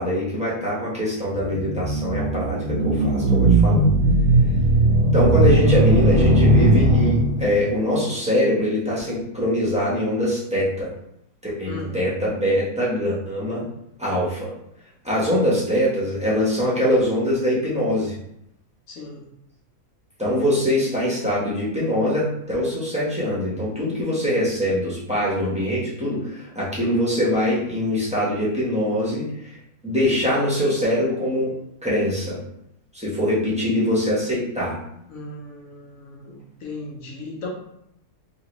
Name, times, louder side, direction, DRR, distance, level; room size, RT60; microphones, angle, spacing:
voice 1, 0.0-3.8 5.1-10.9 11.4-13.6 14.0-14.5 15.0-18.1 20.2-29.5 29.8-31.6 31.8-32.4 32.9-34.8, equal, 5° right, -8 dB, 0.7 m, -23 dB
sound 1, 1.4-7.7, right 1 dB, 70° right, 1.0 m, -18 dB
voice 2, 11.7-12.0 18.9-19.2 35.1-37.5, left 3 dB, 65° left, -2 dB, 1.1 m, -37 dB
3.0 x 2.8 x 3.0 m, 0.77 s
omnidirectional pair, 1.7 m